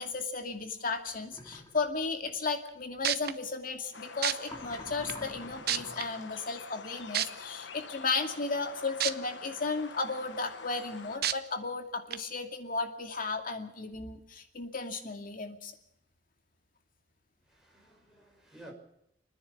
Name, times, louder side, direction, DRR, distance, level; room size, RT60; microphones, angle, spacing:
voice 1, 0.0-15.7, left 4 dB, 50° left, 2.4 m, -34 dB
sound 1, 1.3-1.8 4.4-6.2, left 1 dB, 20° left, 2.9 m, -46 dB
sound 2, 2.7-2.8 3.0-3.3 4.2-4.3 5.1-5.2 5.7-6.0 7.1-7.3 9.0-9.1 9.6-9.7 11.2-11.3 12.1-12.2, right 10 dB, 60° right, 0.8 m, -28 dB
sound 3, 3.9-11.2, left 5 dB, 80° left, 1.1 m, -46 dB
voice 2, 17.4-18.7, right 1 dB, 5° right, 6.1 m, -53 dB
30.0 x 10.0 x 8.6 m
head